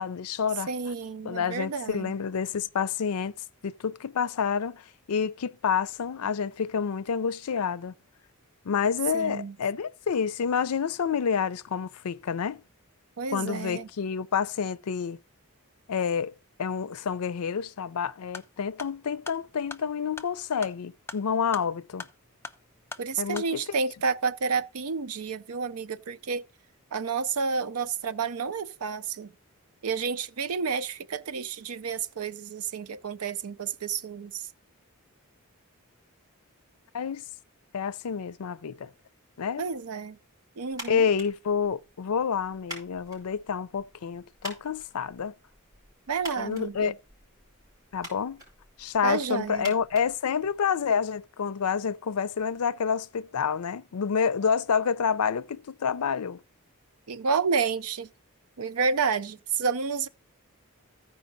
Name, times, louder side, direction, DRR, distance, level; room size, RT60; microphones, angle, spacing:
voice 1, 0.0-0.7 1.2-3.3 3.6-7.9 8.6-12.6 13.3-15.2 15.9-16.3 16.6-22.1 23.2-23.8 36.9-37.2 37.7-38.9 39.4-39.7 40.9-45.3 46.4-46.9 47.9-48.4 48.8-56.4, left 6 dB, 85° left, 0.5 m, -28 dB
voice 2, 0.7-2.1 9.1-9.5 13.2-13.9 23.0-26.4 26.9-29.3 29.8-34.5 39.6-40.2 40.6-41.1 46.1-46.9 49.0-49.7 57.1-58.1 58.6-60.1, right 5 dB, 80° right, 0.6 m, -30 dB
sound 1, 18.3-23.5, left 3 dB, 10° left, 0.5 m, -44 dB
sound 2, 40.7-50.9, right 1 dB, 15° right, 5.1 m, -47 dB
14.5 x 4.9 x 3.9 m
head